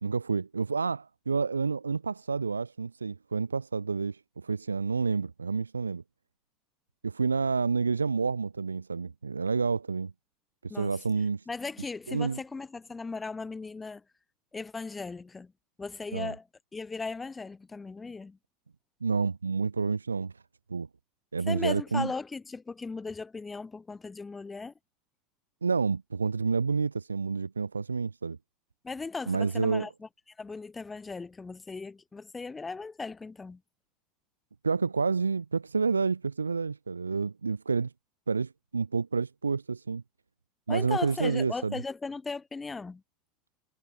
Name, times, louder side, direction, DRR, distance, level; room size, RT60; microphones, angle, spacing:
voice 1, 0.0-6.0 7.0-10.1 10.6-11.4 12.1-12.4 16.1-16.3 19.0-20.3 20.7-20.9 21.3-22.1 25.6-28.4 29.3-29.9 34.6-37.9 38.3-40.0 40.7-41.8, right 4 dB, 80° right, 0.3 m, -29 dB
voice 2, 10.7-11.0 11.5-14.0 14.5-15.5 15.8-16.5 16.7-18.4 21.5-24.7 28.8-30.1 30.4-33.6 40.7-43.0, left 4 dB, 15° left, 0.6 m, -37 dB
figure-of-eight pair, 75°, 0 cm